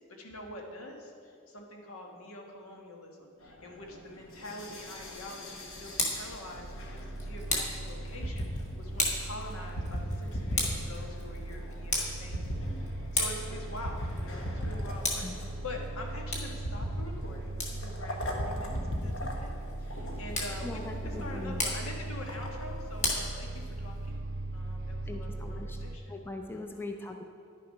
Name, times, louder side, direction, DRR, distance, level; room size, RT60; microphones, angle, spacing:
voice 1, 0.0-24.2 24.5-26.2 26.5-26.9, left 1 dB, 80° left, 1 dB, 1.4 m, -45 dB
sound 1, 3.4-22.8, equal, 60° left, 1.2 m, -40 dB
Tick, 5.7-24.1, left 2 dB, 35° left, 1.5 m, -38 dB
sound 2, 6.5-26.0, right 2 dB, 60° right, 0.6 m, -40 dB
voice 2, 20.6-21.6 25.1-25.8 26.1-27.2, left 2 dB, 10° left, 4 dB, 0.5 m, -40 dB
10.0 x 6.7 x 5.4 m, 2.5 s
head